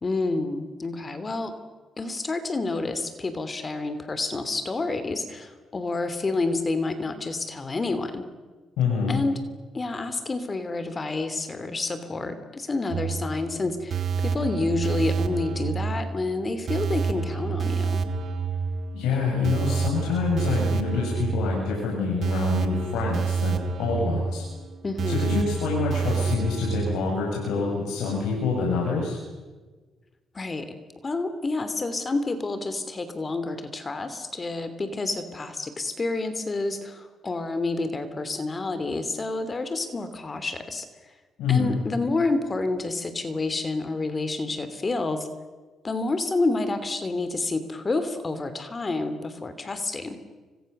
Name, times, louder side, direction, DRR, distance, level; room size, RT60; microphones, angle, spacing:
voice 1, 0.0-1.5 2.0-8.3 9.1-9.4 9.7-18.0 24.8-25.4 30.3-30.7 31.0-40.9 41.5-45.3 45.8-50.2, left 3 dB, 30° left, 11 dB, 3.1 m, -29 dB
voice 2, 8.8-9.2 18.9-24.5 25.1-29.2 41.4-41.7, left 4 dB, 90° left, -2 dB, 7.1 m, -26 dB
sound 1, 12.9-27.0, right 5 dB, 60° right, 2.4 m, -28 dB
29.5 x 25.5 x 6.8 m, 1.3 s
cardioid pair, 90°, 0 cm